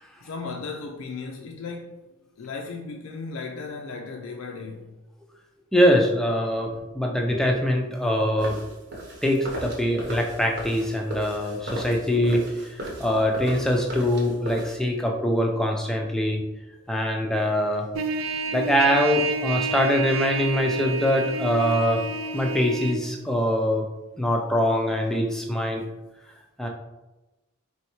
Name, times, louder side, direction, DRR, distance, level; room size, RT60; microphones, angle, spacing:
voice 1, 0.2-2.0 2.4-4.9 13.1-13.2 16.8-17.0, left 4 dB, 75° left, 0.4 m, -36 dB
voice 2, 5.7-8.6 9.2-16.4 16.9-17.9 18.5-22.0 22.3-23.9 24.2-25.8 26.6-26.7, equal, ahead, 0.4 m, -23 dB
sound 1, 8.4-14.8, right 1 dB, 50° right, 0.9 m, -36 dB
Trumpet, 17.9-23.0, right 4 dB, 75° right, 0.4 m, -29 dB
4.5 x 3.1 x 3.0 m
head